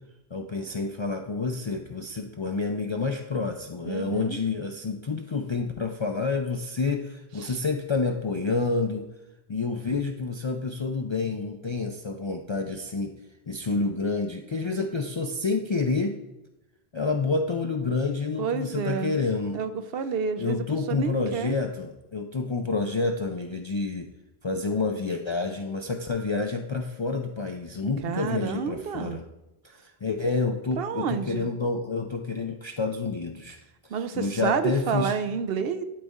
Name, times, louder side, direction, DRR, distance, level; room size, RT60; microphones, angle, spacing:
voice 1, 0.3-9.0 9.5-13.1 13.5-16.1 16.9-19.6 20.4-24.1 24.4-29.2 29.8-33.6 34.2-35.1, left 4 dB, 45° left, 3 dB, 0.3 m, -28 dB
voice 2, 3.8-4.4 7.4-7.6 18.4-19.1 19.5-21.5 28.0-29.2 30.8-31.5 33.9-35.8, right 6 dB, 70° right, 10 dB, 0.8 m, -29 dB
12.0 x 4.1 x 3.6 m, 0.93 s
omnidirectional pair, 1.1 m